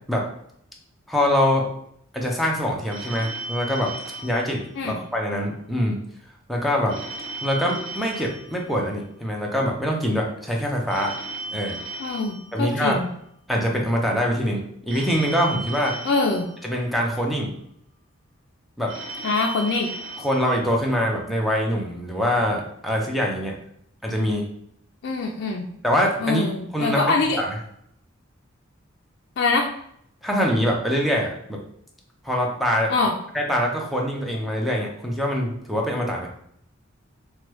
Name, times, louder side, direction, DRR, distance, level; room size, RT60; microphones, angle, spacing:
voice 1, 1.1-1.6 2.1-3.9 4.2-6.0 6.5-7.0 7.4-11.1 11.5-11.8 12.5-13.0 13.5-16.0 16.6-17.5 18.8-18.9 20.2-23.5 24.0-24.4 25.8-26.5 26.7-27.0 27.4-27.5 30.2-31.6 32.2-32.9 33.3-36.3, equal, ahead, -1 dB, 0.5 m, -24 dB
Telephone, 2.9-5.4 6.9-9.4 10.9-13.4 14.9-17.4 18.9-21.4, right 2 dB, 60° right, 0.5 m, -37 dB
voice 2, 12.0-13.1 16.0-16.5 19.2-19.9 25.0-25.7 26.2-27.4 29.4-29.7 32.9-33.1, left 3 dB, 55° left, 0 dB, 0.3 m, -23 dB
3.1 x 2.2 x 3.0 m, 0.70 s
head